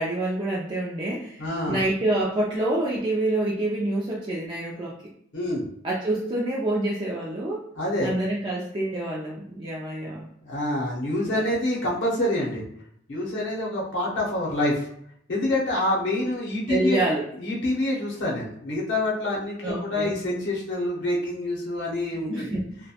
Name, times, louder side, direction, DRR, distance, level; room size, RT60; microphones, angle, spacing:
voice 1, 0.0-5.1 5.8-7.7 8.0-10.3 11.3-11.5 16.7-17.3 19.6-20.2 22.3-22.9, right 1 dB, 25° right, -5 dB, 0.3 m, -27 dB
voice 2, 1.4-1.8 5.3-5.6 7.8-8.1 10.4-12.6 13.1-14.9 15.3-17.0 17.4-22.5, left 1 dB, 70° left, -4 dB, 0.7 m, -26 dB
2.3 x 2.1 x 2.7 m, 0.70 s
head